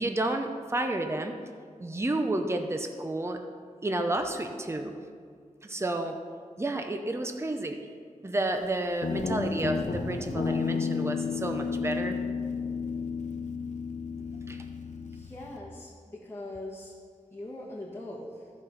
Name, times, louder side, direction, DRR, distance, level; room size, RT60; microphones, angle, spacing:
voice 1, 0.0-1.3 1.8-3.4 3.8-4.9 5.6-6.2 6.6-7.8 8.2-12.2 14.5-14.6, right 2 dB, 20° right, 5 dB, 0.7 m, -31 dB
Guitar, 9.0-15.6, left 5 dB, 65° left, 0.7 m, -32 dB
voice 2, 15.1-16.9 17.3-18.5, left 1 dB, 20° left, -5 dB, 1.4 m, -41 dB
14.0 x 5.1 x 5.7 m, 2.1 s
wide cardioid pair, 65°, 13 cm